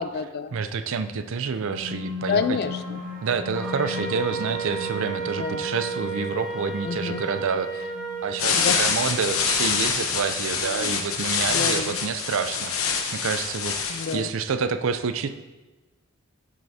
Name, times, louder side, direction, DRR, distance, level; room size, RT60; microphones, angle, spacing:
voice 1, 0.0-0.6 2.3-3.0 4.4-4.5 5.4-5.7 6.8-7.3 8.5-8.9 10.6-10.9 11.5-12.0 13.9-14.3, left 5 dB, 45° left, 11 dB, 0.3 m, -29 dB
voice 2, 0.5-2.4 3.2-7.9 8.2-13.8 14.1-15.3, right 5 dB, 60° right, 10 dB, 0.4 m, -28 dB
sound 1, 1.4-12.4, left 4 dB, 40° right, 0.8 m, -39 dB
Wind instrument woodwind instrument, 3.5-8.4, right 4 dB, ahead, 1.4 m, -32 dB
sound 2, 8.4-14.2, left 6 dB, 65° left, 0.9 m, -25 dB
8.0 x 7.7 x 2.7 m, 1.2 s
head